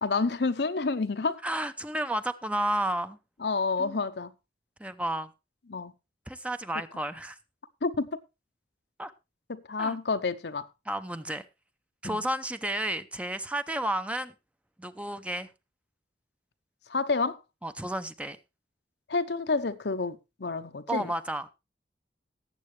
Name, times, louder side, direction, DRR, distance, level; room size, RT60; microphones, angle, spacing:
voice 1, 0.0-1.4 3.4-4.3 5.7-5.9 7.8-8.1 9.5-10.7 12.0-12.2 16.9-17.4 19.1-21.1, left 4 dB, 70° left, 0.8 m, -29 dB
voice 2, 1.4-3.2 3.8-4.0 4.8-5.3 6.3-7.4 9.0-9.1 9.8-10.0 10.9-11.4 12.0-14.3 14.8-15.5 17.6-18.4 20.9-21.5, right 1 dB, 10° right, 0.6 m, -32 dB
18.0 x 7.7 x 3.2 m
head